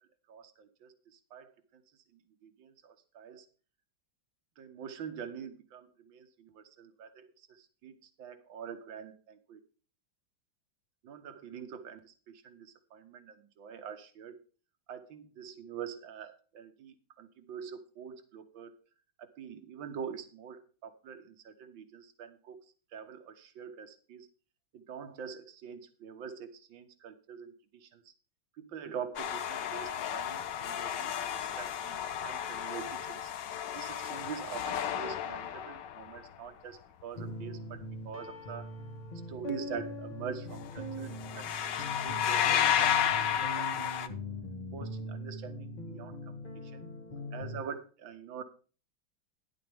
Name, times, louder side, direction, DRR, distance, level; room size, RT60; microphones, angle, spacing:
voice 1, 0.3-1.8 2.1-3.5 4.6-9.6 11.0-14.4 14.9-18.8 19.2-22.7 22.9-24.3 24.7-28.1 28.6-33.3 33.7-38.7 39.3-44.2 44.7-46.8 47.3-48.4, right 7 dB, 75° right, 9 dB, 2.0 m, -45 dB
sound 1, 29.2-36.3 40.5-40.8 41.0-44.1, left 9 dB, 65° left, 1.4 m, -32 dB
sound 2, 37.1-47.6, left 1 dB, 25° left, 1.2 m, -41 dB
12.5 x 11.0 x 3.5 m, 0.37 s
omnidirectional pair, 2.2 m